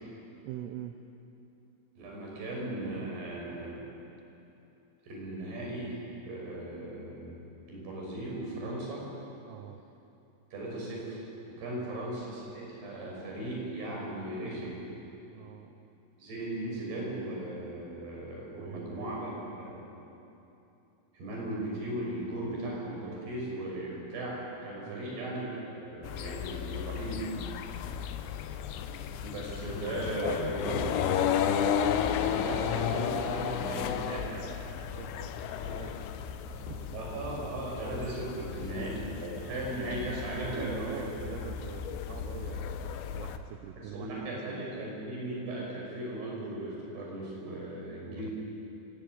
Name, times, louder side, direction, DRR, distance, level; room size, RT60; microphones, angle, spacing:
voice 1, 0.4-1.0 9.5-9.8 11.8-12.0 15.3-15.9 18.5-19.1 24.8-25.4 27.9-28.1 34.9-35.4 35.7-37.0 38.6-38.8 40.3-44.9 48.0-48.3, right 10 dB, 85° right, 6 dB, 3.5 m, -45 dB
voice 2, 2.0-3.9 5.0-6.0 6.3-7.4 7.7-9.0 10.5-11.2 11.4-14.8 16.2-19.3 19.6-19.8 21.1-27.3 29.2-34.5 36.9-41.1 43.8-48.3, right 1 dB, 55° right, -3 dB, 8.0 m, -37 dB
sound 1, 26.0-43.4, left 8 dB, 75° left, 2.9 m, -34 dB
25.0 x 16.5 x 9.2 m, 2.9 s
omnidirectional pair, 5.7 m